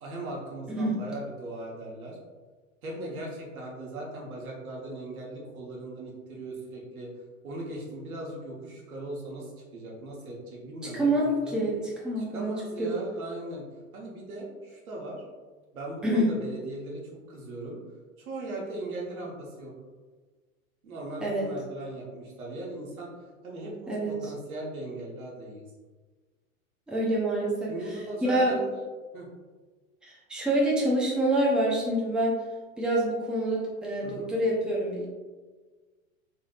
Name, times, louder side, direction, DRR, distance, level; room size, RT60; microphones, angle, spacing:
voice 1, 0.0-2.2 2.8-7.1 7.4-11.6 12.2-13.7 13.9-15.2 15.7-17.8 18.2-19.7 20.8-23.1 23.4-23.9 24.2-25.7 27.7-28.8 29.1-29.3 34.0-34.3, right 2 dB, 85° right, -2 dB, 1.2 m, -38 dB
voice 2, 10.9-12.9 16.0-16.3 21.2-21.5 23.9-24.2 26.9-27.7 28.2-28.5 30.0-32.4 32.8-35.1, right 1 dB, ahead, -4 dB, 0.7 m, -26 dB
3.8 x 3.2 x 2.4 m, 1.4 s
hypercardioid pair, 105°, 42 cm